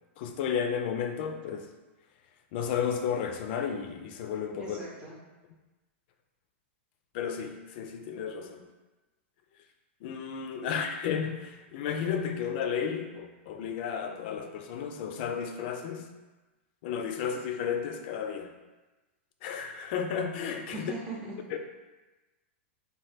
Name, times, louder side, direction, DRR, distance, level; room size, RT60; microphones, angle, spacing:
voice 1, 0.2-1.7 2.5-4.8 7.1-8.6 10.0-16.1 16.8-18.5 19.4-20.9 21.5-21.6, left 7 dB, 50° left, 5 dB, 0.3 m, -33 dB
voice 2, 4.6-5.2 10.7-10.8 20.7-21.4, right 2 dB, 15° right, -6 dB, 0.6 m, -40 dB
3.0 x 2.2 x 3.2 m, 1.1 s
hypercardioid pair, 135°, 7 cm